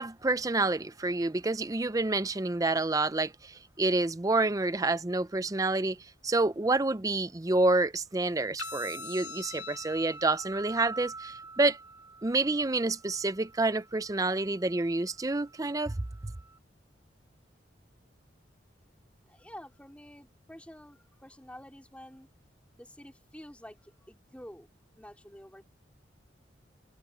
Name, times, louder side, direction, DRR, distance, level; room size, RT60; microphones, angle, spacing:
voice 1, 0.0-6.0 6.2-11.8 12.2-16.0 16.2-16.3, right 2 dB, 20° right, 0.5 m, -28 dB
sound 1, 8.6-16.6, equal, 85° left, 2.0 m, -45 dB
voice 2, 19.3-22.3 22.7-25.6, equal, 5° left, 4.5 m, -49 dB
head